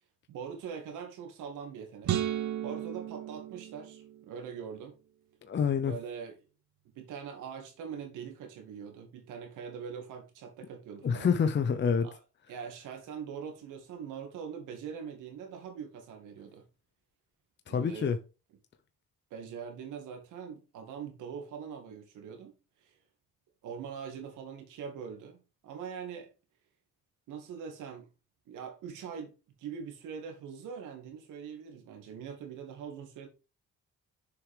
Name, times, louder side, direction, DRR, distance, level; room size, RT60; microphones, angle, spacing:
voice 1, 0.3-2.1 2.6-4.9 5.8-6.4 7.0-11.3 12.0-12.2 12.5-16.6 17.7-18.1 19.3-22.5 22.8-22.9 23.6-26.3 27.3-28.1 28.5-33.3, right 7 dB, 90° right, 2.3 m, -42 dB
sound 1, 2.0-4.4, right 11 dB, 70° right, 1.2 m, -34 dB
voice 2, 5.4-6.0 11.0-12.1 17.7-18.2, left 6 dB, 40° left, 0.8 m, -27 dB
7.0 x 4.9 x 5.0 m
cardioid pair, 90°, 30 cm